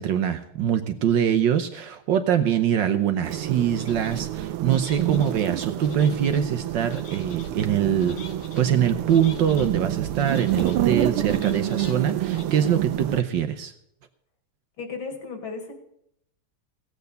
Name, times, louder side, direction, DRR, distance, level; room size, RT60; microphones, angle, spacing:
voice 1, 0.0-8.2 8.6-13.7, right 9 dB, 65° right, 9 dB, 1.3 m, -23 dB
sound 1, 3.2-13.2, right 13 dB, 90° right, 1.6 m, -28 dB
sound 2, 3.7-4.2 4.7-5.3 5.8-6.4 6.9-7.5 8.0-8.6 9.1-9.7 10.1-10.8 11.2-11.9 12.3-12.4, left 6 dB, 80° left, 2.3 m, -45 dB
voice 2, 14.8-15.7, left 4 dB, 65° left, 5 dB, 2.7 m, -34 dB
16.0 x 8.2 x 6.6 m, 0.74 s
omnidirectional pair, 2.4 m